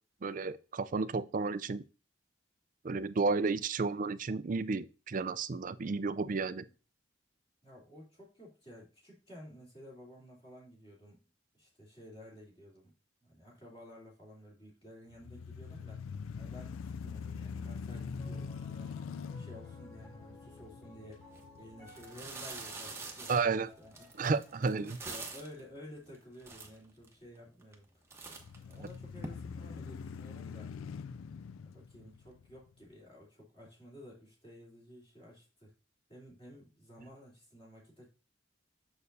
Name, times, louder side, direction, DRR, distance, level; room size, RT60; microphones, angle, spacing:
voice 1, 0.2-1.8 2.8-6.6 23.3-23.7 24.2-25.0 28.8-28.9, right 4 dB, 40° right, 0.4 m, -32 dB
voice 2, 7.6-11.2 11.5-12.9 13.2-16.0 16.4-19.0 19.4-21.2 21.5-24.3 24.8-28.4 28.7-30.7 31.6-35.7 36.1-38.1, equal, 25° left, 3.1 m, -53 dB
sound 1, 15.1-23.2 23.7-23.8 28.3-32.8, left 5 dB, 85° left, 0.4 m, -44 dB
Piano, 18.1-28.5, left 2 dB, 10° left, 3.1 m, -59 dB
sound 2, 21.3-21.4 21.8-25.6 26.1-26.2 26.4-27.1 27.6-27.8 28.1-29.3, right 3 dB, 15° right, 1.0 m, -45 dB
6.9 x 6.5 x 2.6 m
head